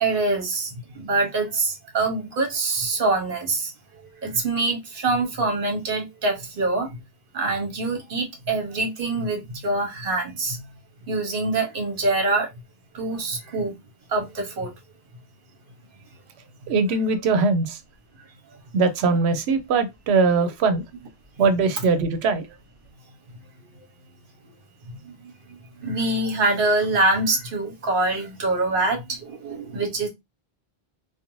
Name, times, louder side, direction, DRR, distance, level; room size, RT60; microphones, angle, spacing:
voice 1, 0.0-3.7 4.0-6.9 7.3-10.6 11.1-12.5 12.9-13.7 14.1-14.7 25.0-30.1, right 2 dB, 60° right, 1.0 m, -25 dB
voice 2, 16.7-17.8 18.7-20.8 21.4-22.5, right 4 dB, 85° right, 0.8 m, -21 dB
2.5 x 2.3 x 2.9 m
omnidirectional pair, 1.1 m